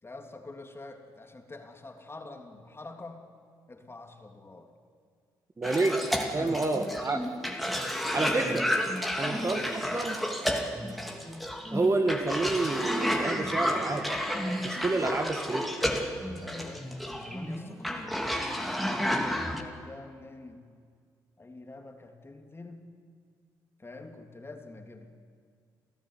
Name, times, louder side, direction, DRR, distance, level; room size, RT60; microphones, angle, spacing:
voice 1, 0.0-3.2 3.7-4.7 5.7-6.2 6.7-7.2 9.4-9.8 16.4-18.8 19.2-20.7 21.4-22.9 23.8-25.1, left 2 dB, 25° left, 4 dB, 3.2 m, -46 dB
Cough, 5.6-19.6, equal, ahead, 2.9 m, -31 dB
voice 2, 5.6-5.9 6.3-7.2 8.1-8.7 9.2-10.2 11.7-14.1 14.6-15.7, right 3 dB, 30° right, 6 dB, 2.1 m, -29 dB
28.0 x 14.5 x 9.7 m, 2.1 s
hypercardioid pair, 50°, 10 cm